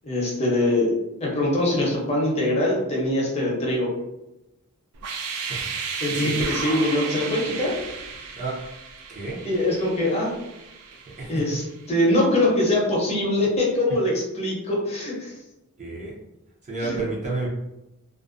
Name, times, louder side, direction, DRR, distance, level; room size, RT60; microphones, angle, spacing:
voice 1, 0.0-0.9 1.2-3.9 6.0-7.8 9.4-10.3 11.3-11.6 11.9-15.3 16.8-17.0, left 1 dB, 30° left, -4 dB, 0.7 m, -23 dB
sound 1, 4.9-11.8, right 5 dB, 85° right, 0.4 m, -34 dB
voice 2, 15.8-16.1 16.6-17.5, right 3 dB, 35° right, -3 dB, 0.6 m, -30 dB
2.4 x 2.1 x 2.5 m, 0.94 s
head